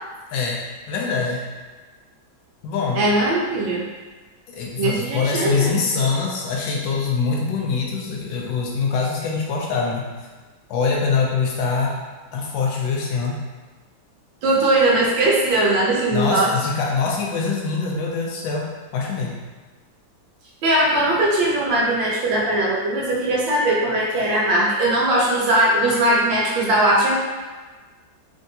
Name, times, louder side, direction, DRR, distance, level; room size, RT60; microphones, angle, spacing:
voice 1, 0.9-1.5 2.6-3.0 4.5-10.1 10.7-12.0 12.3-13.4 16.1-18.7 18.9-19.4, left 4 dB, 80° left, -2 dB, 1.3 m, -23 dB
voice 2, 2.9-3.8 4.8-5.7 14.4-16.5 20.6-27.2, right 1 dB, 80° right, -4 dB, 1.5 m, -19 dB
3.4 x 2.7 x 2.7 m, 1.3 s
omnidirectional pair, 2.1 m